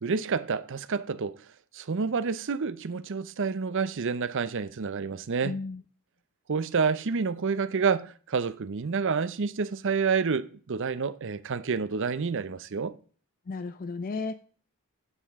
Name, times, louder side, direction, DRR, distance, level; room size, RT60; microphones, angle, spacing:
voice 1, 0.0-1.4 1.7-5.6 6.5-12.9, right 5 dB, 60° right, 0.6 m, -29 dB
voice 2, 5.4-5.8 13.5-14.3, left 3 dB, 40° left, 0.4 m, -33 dB
9.8 x 7.5 x 3.6 m
head